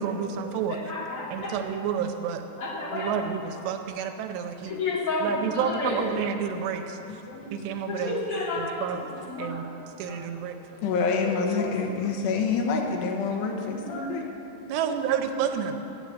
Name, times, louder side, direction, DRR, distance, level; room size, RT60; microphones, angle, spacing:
voice 1, 0.0-0.8 1.3-2.4 2.9-4.8 5.2-7.2 7.5-8.2 8.6-9.0 9.4-9.7 10.0-10.6 14.7-15.8, right 8 dB, 80° right, 6 dB, 2.8 m, -30 dB
voice 2, 0.7-1.5 2.6-3.1 4.7-6.0 7.9-9.6 10.1-10.4 11.2-11.7 12.0-12.1 13.8-14.1 14.7-14.9, left 3 dB, 40° left, -6 dB, 2.8 m, -32 dB
voice 3, 8.9-9.3 10.8-14.2, left 4 dB, 80° left, 1 dB, 3.3 m, -27 dB
10.5 x 7.8 x 8.4 m, 2.9 s
omnidirectional pair, 5.0 m